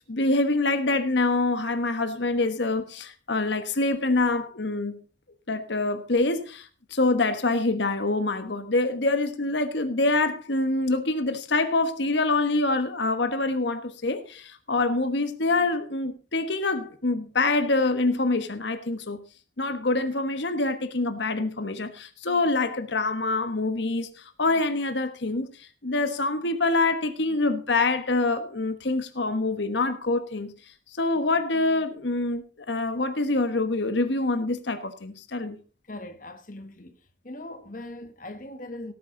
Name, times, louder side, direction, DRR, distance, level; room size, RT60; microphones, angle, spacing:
voice 1, 0.1-5.0 5.5-19.2 19.6-30.5 31.0-35.6, left 2 dB, 70° left, 1.3 m, -25 dB
voice 2, 35.9-37.0 37.2-38.9, left 1 dB, 45° left, 1.3 m, -40 dB
17.5 x 9.3 x 3.9 m
head